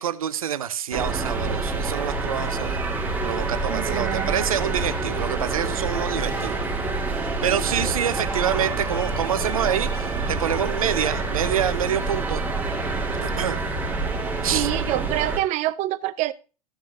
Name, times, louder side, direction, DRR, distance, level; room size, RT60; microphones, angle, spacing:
voice 1, 0.0-2.8 3.2-6.6 7.4-12.4 13.2-13.6 14.4-14.7, right 9 dB, 70° right, 1.1 m, -26 dB
sound 1, 0.9-15.4, right 3 dB, 10° right, 3.2 m, -27 dB
voice 2, 3.7-4.3 14.5-16.3, right 16 dB, 40° right, 0.8 m, -26 dB
15.0 x 6.3 x 3.3 m
figure-of-eight pair, 95°, 19 cm